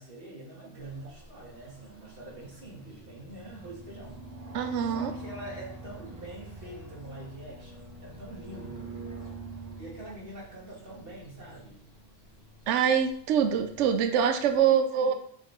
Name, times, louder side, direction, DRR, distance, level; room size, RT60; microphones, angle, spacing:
voice 1, 0.0-4.2 4.8-8.9 9.5-11.9 14.5-15.1, right 1 dB, 50° right, -4 dB, 2.4 m, -45 dB
sound 1, 0.8-14.6, right 2 dB, 35° right, 1.3 m, -46 dB
voice 2, 4.5-5.1 12.7-15.1, right 8 dB, 75° right, 7 dB, 0.9 m, -24 dB
6.4 x 4.9 x 4.4 m, 0.63 s
omnidirectional pair, 1.2 m